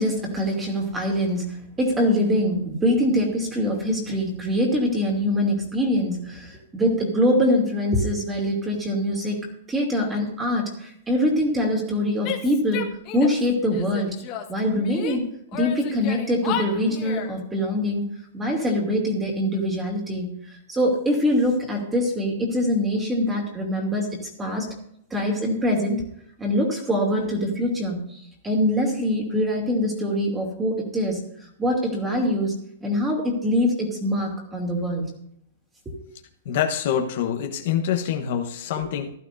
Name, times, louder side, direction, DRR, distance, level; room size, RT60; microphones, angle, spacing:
voice 1, 0.0-1.4 1.8-9.4 9.7-12.8 13.1-14.2 14.5-15.2 15.5-18.1 18.3-20.3 20.7-24.1 24.4-24.7 25.1-26.0 26.4-31.2 31.6-32.5 32.8-35.1 35.9-36.0, equal, 10° right, 0 dB, 2.7 m, -23 dB
Female speech woman speaking / Yell, 12.2-13.4 13.7-15.2 15.5-17.4, left 9 dB, 30° left, 1.4 m, -33 dB
voice 2, 36.4-39.1, left 9 dB, 55° left, 4 dB, 1.1 m, -25 dB
15.5 x 12.0 x 2.7 m, 0.72 s
hypercardioid pair, 150°, 0 cm